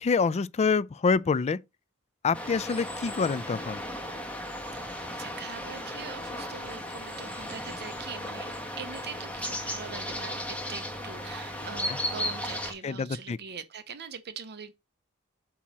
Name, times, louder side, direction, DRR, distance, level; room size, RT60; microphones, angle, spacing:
voice 1, 0.0-1.6 2.2-3.8 11.9-12.0 12.8-13.4, left 5 dB, 30° left, 0.3 m, -26 dB
sound 1, 2.3-12.7, equal, 5° left, 1.3 m, -35 dB
voice 2, 4.7-8.5 8.8-14.7, right 6 dB, 50° right, 0.7 m, -42 dB
8.4 x 2.9 x 6.1 m
head